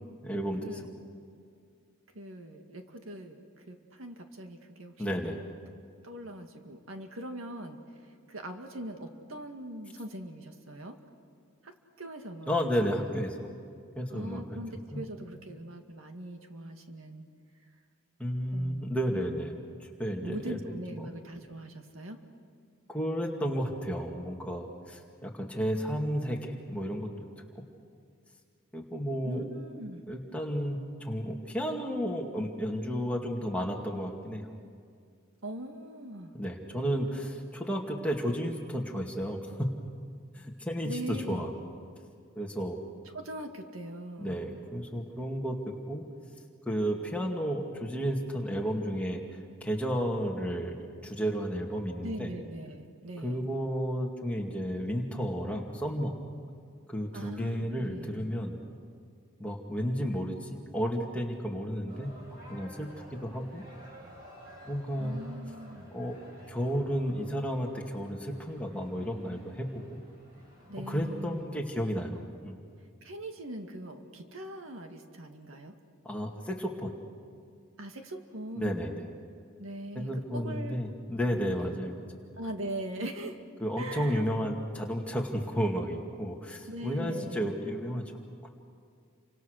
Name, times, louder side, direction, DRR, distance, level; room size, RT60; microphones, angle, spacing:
voice 1, 0.2-0.9 5.0-5.4 12.5-13.5 14.0-14.4 14.9-15.0 18.2-21.1 22.9-27.1 28.7-29.4 30.1-34.5 36.3-39.6 40.3-41.5 42.4-42.8 44.2-45.6 45.9-46.0 46.7-50.8 51.0-52.3 53.2-56.2 56.9-58.6 59.4-62.1 62.5-63.6 64.6-65.2 65.9-66.1 66.5-70.0 70.9-72.6 76.0-76.9 78.6-79.0 80.0-82.2 83.6-88.1 88.4-88.5, equal, 5° left, 0 dB, 2.3 m, -32 dB
voice 2, 2.1-4.9 6.0-11.0 11.6-12.9 14.1-17.2 18.5-19.5 20.2-22.2 29.2-30.0 35.4-36.3 40.8-41.6 43.1-44.4 52.0-53.4 57.1-58.3 65.0-65.9 70.7-71.6 73.0-75.7 77.8-79.0 79.6-80.8 81.3-81.8 82.4-83.4 83.8-84.2 86.7-87.5, right 1 dB, 75° right, 4 dB, 2.1 m, -41 dB
sound 1, 61.9-71.4, right 1 dB, 45° right, 7.2 m, -52 dB
29.5 x 25.0 x 6.6 m, 2.3 s
head